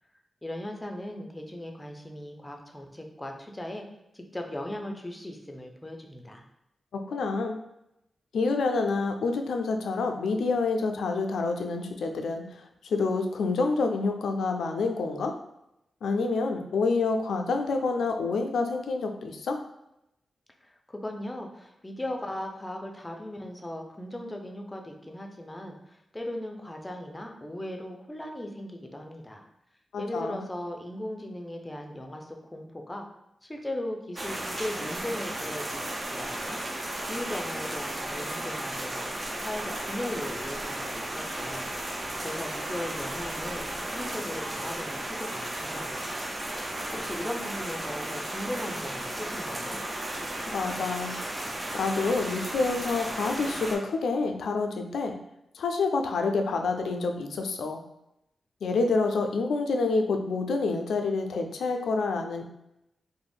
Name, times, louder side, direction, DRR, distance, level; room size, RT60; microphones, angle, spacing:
voice 1, 0.4-3.8 4.1-6.4 20.6-29.4 30.0-33.0 33.4-39.1 39.4-41.6 42.2-43.6 43.9-46.2 46.9-49.8, left 1 dB, 15° left, 2 dB, 0.5 m, -38 dB
voice 2, 6.9-7.6 8.3-15.3 16.0-19.6 29.9-30.4 50.5-51.2 51.7-55.2 55.5-57.8 58.6-62.5, left 3 dB, 90° left, 5 dB, 0.3 m, -28 dB
sound 1, 34.2-53.8, right 1 dB, 35° right, 0.5 m, -34 dB
2.4 x 2.0 x 3.4 m, 0.85 s
cardioid pair, 70°, 0 cm